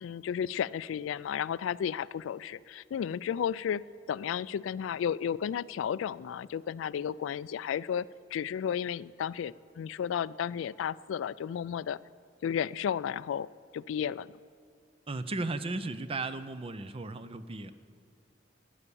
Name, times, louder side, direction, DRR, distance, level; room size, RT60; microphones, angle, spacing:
voice 1, 0.0-12.0 12.4-13.5 13.7-14.3, left 8 dB, 90° left, 20 dB, 0.3 m, -33 dB
voice 2, 15.1-17.7, right 2 dB, 30° right, 12 dB, 0.5 m, -35 dB
14.0 x 10.0 x 6.9 m, 2.3 s
head